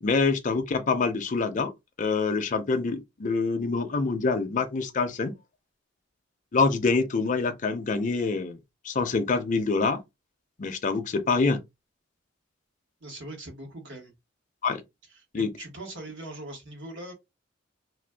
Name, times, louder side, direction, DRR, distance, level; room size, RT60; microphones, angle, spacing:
voice 1, 0.0-1.7 2.0-5.3 6.5-8.6 8.8-10.0 10.6-11.6 14.6-14.8 15.3-15.5, left 4 dB, 40° left, 0.4 m, -25 dB
voice 2, 13.0-14.1 15.1-17.1, right 1 dB, 65° right, 1.2 m, -41 dB
2.5 x 2.1 x 3.4 m
head